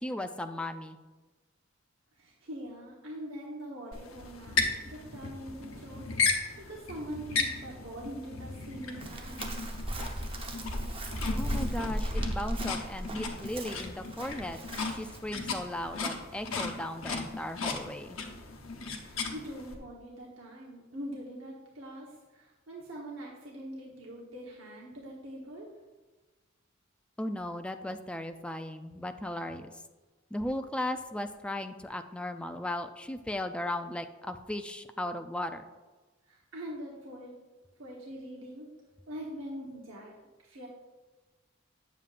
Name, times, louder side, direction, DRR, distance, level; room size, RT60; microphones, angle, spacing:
voice 1, 0.0-1.0 11.4-18.2 27.2-29.7 30.3-35.6, left 1 dB, 5° left, 7 dB, 0.3 m, -36 dB
voice 2, 2.2-9.5 19.0-25.7 36.3-37.3 37.8-38.7 39.1-40.1 40.4-40.7, equal, 70° right, -4 dB, 1.1 m, -43 dB
sound 1, 3.9-19.7, left 4 dB, 85° left, 0.9 m, -36 dB
Chirp tweet, 9.0-15.2, equal, 25° right, 0.8 m, -36 dB
9.2 x 7.3 x 2.5 m, 1.2 s
head